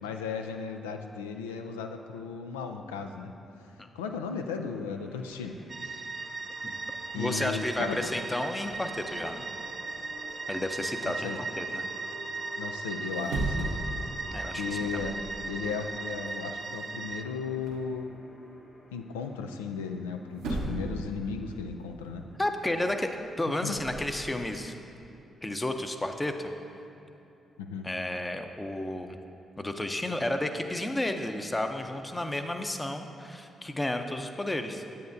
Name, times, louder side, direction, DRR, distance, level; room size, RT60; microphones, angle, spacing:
voice 1, 0.0-3.3 4.0-5.6 5.8-6.1 7.1-8.1 11.0-11.4 12.6-13.7 14.3-15.2 15.5-18.1 18.9-22.3 23.6-23.8 27.6-27.9, left 5 dB, 90° left, 5 dB, 0.3 m, -36 dB
sound 1, 4.6-23.6, left 2 dB, 50° left, 1.0 m, -51 dB
sound 2, 5.3-5.6 6.2-6.3 6.6-10.9 13.0-14.0 14.3-14.6 14.9-15.5 15.7-17.9 19.9-20.0 20.3-21.1 21.3-24.2, right 2 dB, 80° right, 1.0 m, -39 dB
sound 3, 5.7-17.2, right 4 dB, 50° right, 0.5 m, -37 dB
voice 2, 7.1-9.5 10.5-11.9 14.3-15.1 22.4-23.1 23.4-24.7 25.4-26.5 27.8-29.2 29.6-34.8, left 1 dB, 20° left, 6 dB, 0.6 m, -32 dB
9.2 x 8.3 x 2.7 m, 2.9 s
hypercardioid pair, 45°, 0 cm